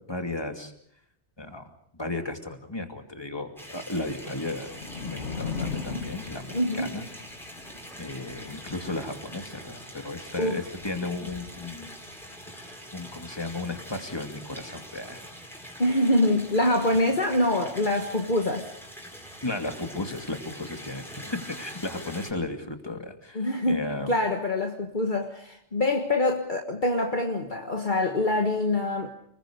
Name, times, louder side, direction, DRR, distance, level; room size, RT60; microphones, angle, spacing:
voice 1, 0.1-0.7 1.4-1.6 1.9-4.7 5.0-7.0 8.0-11.9 12.5-15.3 19.4-24.1, left 2 dB, 20° left, 4 dB, 2.5 m, -34 dB
sound 1, 3.6-22.3, equal, ahead, 5.0 m, -44 dB
Thunder / Rain, 4.0-12.3, left 5 dB, 85° left, 1.9 m, -40 dB
voice 2, 6.5-6.9 10.4-10.6 15.8-18.7 23.3-29.1, left 1 dB, 45° left, 2 dB, 1.7 m, -25 dB
29.5 x 21.0 x 5.2 m, 0.69 s
omnidirectional pair, 1.2 m